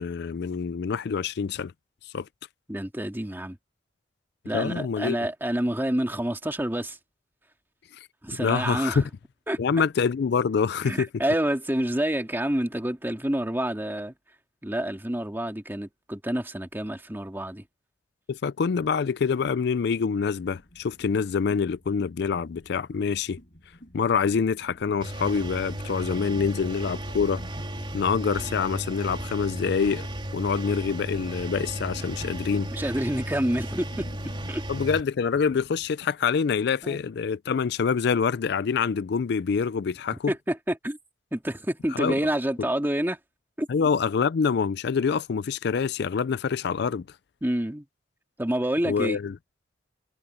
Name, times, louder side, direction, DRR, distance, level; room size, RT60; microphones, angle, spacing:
voice 1, 0.0-1.7 2.0-2.3 4.5-5.2 8.4-9.0 9.6-11.2 18.3-23.4 23.9-27.4 27.9-30.1 30.3-32.7 34.7-40.3 41.9-42.2 42.6-42.7 43.7-47.0 48.8-49.4, left 6 dB, 65° left, 0.4 m, -26 dB
voice 2, 2.7-3.6 4.4-7.0 8.2-9.0 9.5-9.8 10.8-14.1 14.6-17.6 32.7-34.0 34.5-34.6 36.8-37.0 40.3-41.0 41.3-43.2 43.6-43.7 47.4-47.8 48.4-49.2, right 1 dB, 10° right, 2.0 m, -28 dB
sound 1, 20.4-35.9, equal, 50° left, 6.8 m, -51 dB
Engine, 25.0-35.0, right 1 dB, 30° right, 3.3 m, -34 dB
head